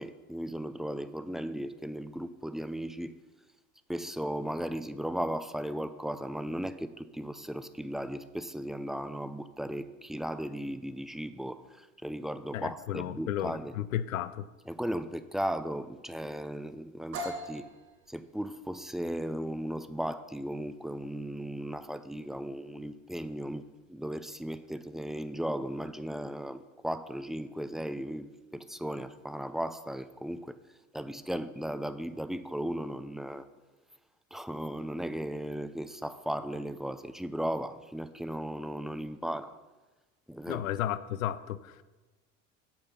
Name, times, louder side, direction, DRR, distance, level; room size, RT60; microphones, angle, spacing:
voice 1, 0.0-3.1 3.9-13.8 14.7-17.7 18.1-30.6 30.9-33.5 34.3-39.6 40.3-40.7, equal, ahead, 0.4 m, -36 dB
voice 2, 12.5-14.5 40.5-41.8, left 11 dB, 80° left, 0.6 m, -33 dB
sound 1, 17.1-24.8, equal, 75° right, 2.7 m, -46 dB
8.6 x 8.0 x 5.8 m
hypercardioid pair, 70°, 40 cm